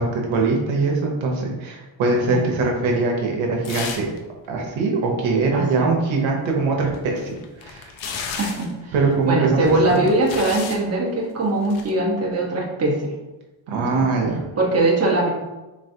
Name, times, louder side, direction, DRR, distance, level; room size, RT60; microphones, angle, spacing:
voice 1, 0.0-4.1 4.5-7.9 8.9-10.0 13.7-14.4, right 3 dB, 90° right, 0 dB, 0.9 m, -22 dB
sound 1, 3.6-4.2 4.4-4.5 6.9-8.7 9.7-10.8 11.6-11.9, left 5 dB, 75° left, 0.7 m, -33 dB
voice 2, 5.5-5.9 8.4-8.9 9.3-13.1 13.7-14.1 14.6-15.3, right 2 dB, 35° right, -3 dB, 1.1 m, -21 dB
4.0 x 3.1 x 2.7 m, 1.1 s
cardioid pair, 110°, 46 cm